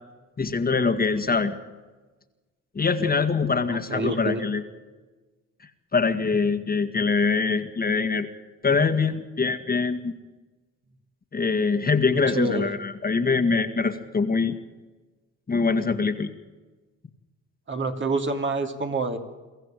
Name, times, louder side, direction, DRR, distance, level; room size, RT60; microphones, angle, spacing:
voice 1, 0.4-1.5 2.8-4.6 5.9-8.3 8.6-10.1 11.3-14.6 15.5-16.3, left 4 dB, 30° left, 7 dB, 2.0 m, -23 dB
voice 2, 3.7-4.4 12.1-12.6 17.7-19.2, right 3 dB, 40° right, 5 dB, 2.9 m, -27 dB
23.5 x 14.5 x 9.2 m, 1.2 s
cardioid pair, 90°, 30 cm